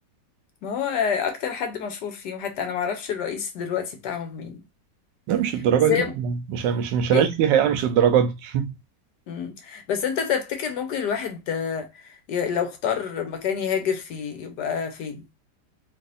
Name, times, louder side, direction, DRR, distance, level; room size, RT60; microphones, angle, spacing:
voice 1, 0.6-4.6 5.9-6.1 7.1-7.3 9.3-15.2, left 7 dB, 75° left, 1.4 m, -28 dB
voice 2, 5.3-8.7, right 8 dB, 85° right, 1.3 m, -21 dB
3.4 x 2.9 x 2.5 m
omnidirectional pair, 1.9 m